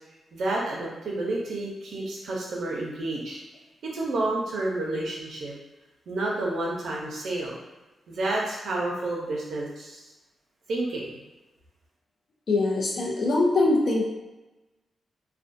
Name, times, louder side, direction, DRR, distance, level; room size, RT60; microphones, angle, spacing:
voice 1, 0.3-3.4 3.8-5.5 6.1-7.5 8.1-10.0 10.7-11.2, right 2 dB, 75° right, -3 dB, 0.7 m, -30 dB
voice 2, 12.5-14.0, left 2 dB, 55° left, -2 dB, 0.6 m, -22 dB
2.5 x 2.2 x 2.5 m, 1.1 s
cardioid pair, 105°, 0 cm